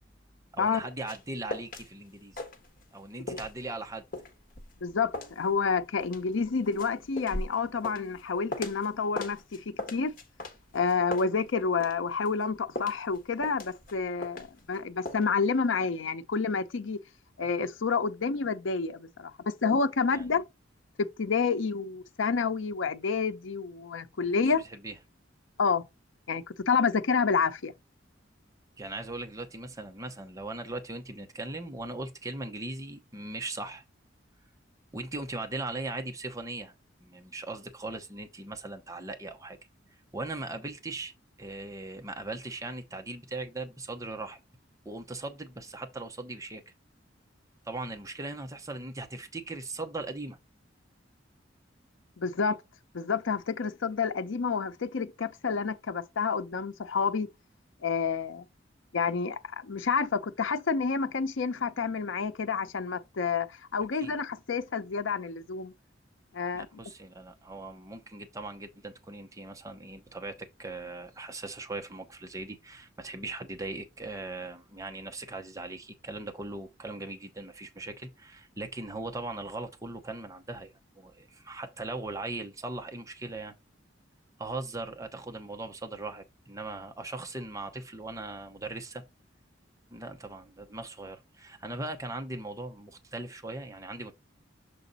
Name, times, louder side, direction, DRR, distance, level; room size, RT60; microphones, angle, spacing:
voice 1, 0.5-2.4 2.9-4.0 20.1-20.4 24.5-25.0 28.8-33.8 34.9-36.7 37.0-39.6 40.1-41.1 41.4-44.4 44.8-46.7 47.6-50.4 64.0-64.2 66.5-83.5 84.4-89.0 89.9-94.1, right 2 dB, 15° right, 0.8 m, -39 dB
sound 1, 0.6-1.9 2.1-3.0 3.3-8.9 9.2-12.0 12.2-14.8 15.1-15.2, left 2 dB, 45° left, 1.3 m, -39 dB
voice 2, 4.8-10.1 10.7-17.0 17.4-19.3 19.6-20.4 21.2-24.6 25.6-25.9 26.3-27.7 52.2-52.6 52.9-57.3 57.8-58.4 58.9-65.7 66.3-66.7, left 5 dB, 85° left, 0.6 m, -29 dB
6.9 x 4.0 x 4.0 m
head